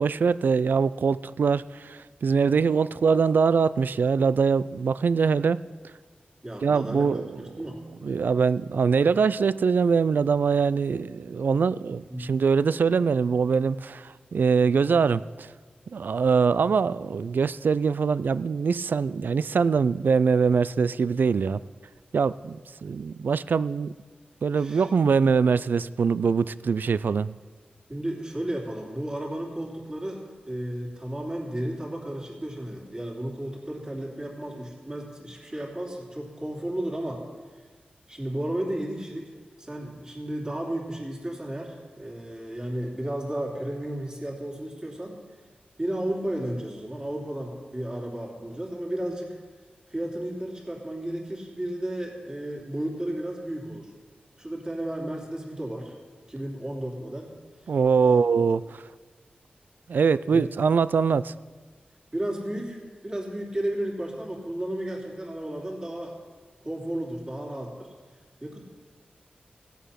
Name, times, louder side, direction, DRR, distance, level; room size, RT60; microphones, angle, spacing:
voice 1, 0.0-5.6 6.6-7.4 8.0-15.5 15.9-21.6 22.1-23.9 24.4-27.3 57.7-58.8 59.9-61.3, right 5 dB, 70° right, 0.3 m, -23 dB
voice 2, 6.4-7.8 12.1-12.2 24.5-24.9 27.9-37.2 38.1-39.3 39.6-45.2 45.8-49.4 49.9-53.9 54.4-55.9 56.3-57.3 58.0-58.4 60.3-60.5 62.1-66.1 66.6-67.9 68.4-68.6, right 1 dB, 25° right, 3.0 m, -33 dB
16.5 x 8.2 x 5.8 m
wide cardioid pair, 95°, 3 cm